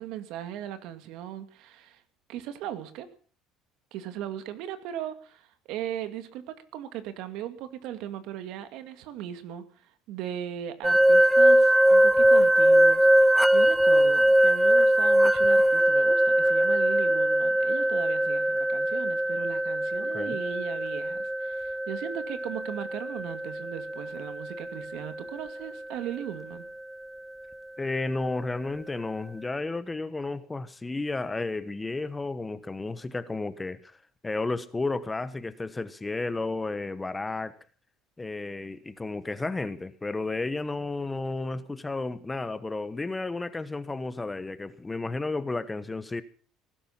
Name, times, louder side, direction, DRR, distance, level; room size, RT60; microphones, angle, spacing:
voice 1, 0.0-2.0 2.3-3.1 3.9-26.7, right 11 dB, 70° right, 2.3 m, -38 dB
sound 1, 10.8-25.7, right 1 dB, 5° right, 0.8 m, -22 dB
voice 2, 20.0-20.4 27.8-34.0 34.2-37.5 38.2-46.2, left 3 dB, 15° left, 1.1 m, -32 dB
19.5 x 11.5 x 5.8 m
cardioid pair, 115°, 0 cm